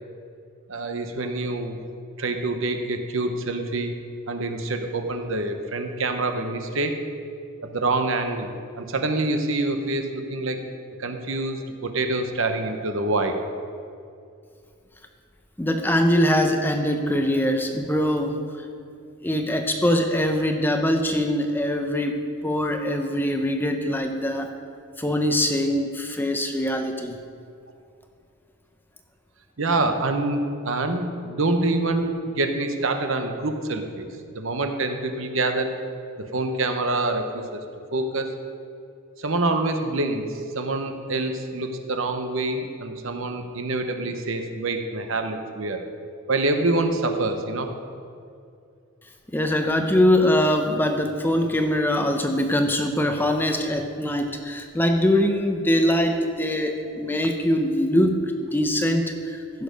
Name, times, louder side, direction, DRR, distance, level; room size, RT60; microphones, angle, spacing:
voice 1, 0.7-1.8 2.2-3.9 4.3-7.0 7.6-8.5 8.8-10.6 11.0-13.3 29.6-34.1 34.3-35.7 36.3-37.6 37.9-38.3 39.2-45.8 46.3-47.7, right 2 dB, 65° right, 6 dB, 1.0 m, -26 dB
voice 2, 15.6-18.4 19.2-24.5 25.0-27.2 49.3-59.6, left 1 dB, 10° left, 5 dB, 0.6 m, -23 dB
15.5 x 6.7 x 5.2 m, 2.4 s
head